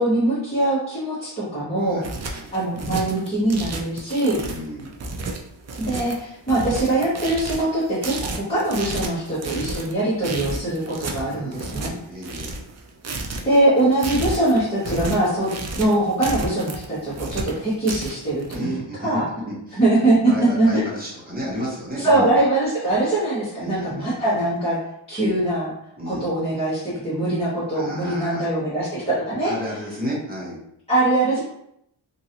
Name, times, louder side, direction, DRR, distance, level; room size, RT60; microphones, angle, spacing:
voice 1, 0.0-2.0 2.5-4.4 5.8-11.9 13.4-15.5 15.7-19.2 19.8-20.8 22.0-24.8 25.1-25.7 26.0-29.5 30.9-31.4, right 1 dB, 10° left, -14 dB, 1.3 m, -22 dB
voice 2, 1.8-2.5 4.4-4.9 10.9-12.5 18.5-19.0 19.5-19.8 20.3-22.3 23.6-24.5 26.0-26.3 27.7-28.5 29.4-30.6, equal, 20° right, -6 dB, 0.8 m, -33 dB
sound 1, 1.8-18.6, right 2 dB, 35° right, 0.4 m, -32 dB
2.9 x 2.6 x 2.8 m, 0.75 s
wide cardioid pair, 155°, 48 cm